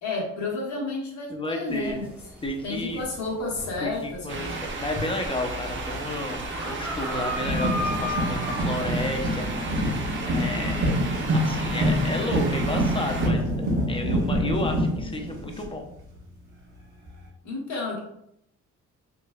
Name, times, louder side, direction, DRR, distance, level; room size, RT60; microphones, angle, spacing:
voice 1, 0.0-2.1 2.6-4.7 17.4-18.0, left 3 dB, 70° left, -3 dB, 1.4 m, -31 dB
voice 2, 1.3-2.0 2.4-3.0 3.8-9.5 10.3-10.8 11.3-13.5 13.9-15.8, left 1 dB, 15° left, 3 dB, 0.6 m, -32 dB
sound 1, 1.7-12.8, left 1 dB, 5° right, 1.1 m, -37 dB
sound 2, 4.3-13.3, right 3 dB, 40° right, 0.6 m, -34 dB
sound 3, 7.4-16.2 17.1-17.2, equal, 55° right, 1.5 m, -26 dB
3.4 x 3.0 x 2.2 m, 0.75 s
cardioid pair, 90°, 30 cm